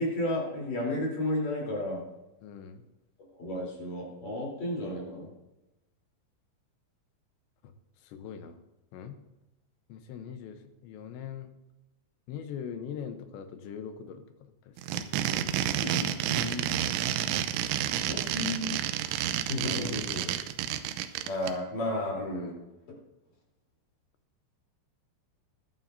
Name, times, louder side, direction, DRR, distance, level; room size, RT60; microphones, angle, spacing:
voice 1, 0.0-2.0 3.3-5.3 15.8-16.7 18.1-18.8 19.4-20.0 21.3-22.5, left 1 dB, 45° left, -3 dB, 4.7 m, -32 dB
voice 2, 2.4-2.9 8.0-8.6 8.9-9.2 9.9-11.5 12.3-15.0 19.5-20.4, left 7 dB, 75° left, 7 dB, 3.0 m, -41 dB
sound 1, 14.8-21.5, right 11 dB, 90° right, 3.1 m, -30 dB
20.5 x 11.5 x 2.7 m, 0.97 s
omnidirectional pair, 5.5 m